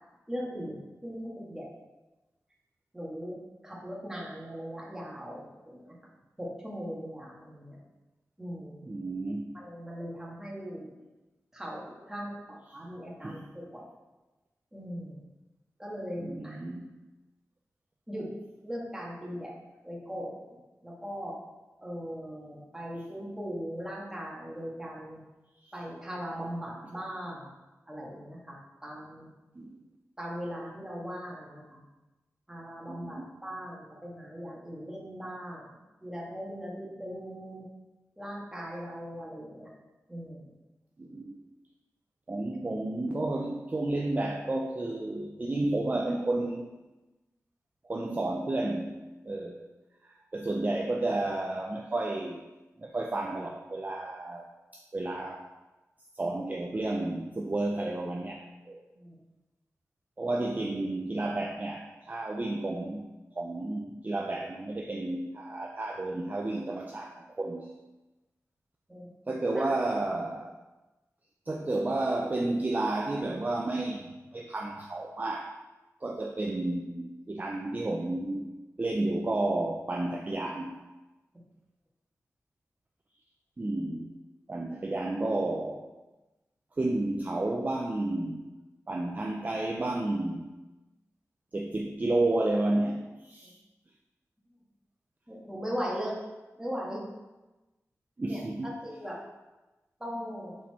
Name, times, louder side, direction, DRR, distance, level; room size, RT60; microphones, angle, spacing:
voice 1, 0.3-1.7 2.9-3.4 3.6-5.9 6.4-7.8 8.4-8.9 9.5-10.9 11.5-13.8 14.7-15.2 15.8-16.6 18.1-18.3 18.6-19.5 19.8-20.4 20.8-21.4 21.8-25.2 25.7-27.5 27.9-28.6 28.8-29.3 30.2-31.8 32.5-35.7 36.0-37.6 38.2-39.7 40.1-40.5 58.9-59.1 68.9-69.1 69.5-69.7 93.4-93.5 95.3-96.2 96.6-97.0 98.3-98.4 98.8-99.2 100.0-100.6, equal, 10° right, -4 dB, 1.7 m, -39 dB
voice 2, 8.8-9.6 13.2-13.5 16.2-17.0 25.6-25.7 29.6-29.8 32.9-33.3 41.0-41.4 42.3-46.7 47.8-49.7 50.0-52.5 52.8-55.4 56.2-58.8 60.2-67.7 69.3-70.5 71.5-75.6 76.0-80.8 83.6-84.1 84.5-85.9 86.8-88.5 88.9-90.6 91.5-93.6 98.2-98.7, right 2 dB, 30° right, 1 dB, 0.5 m, -32 dB
6.2 x 4.3 x 4.3 m, 1.1 s
wide cardioid pair, 85°, 6 cm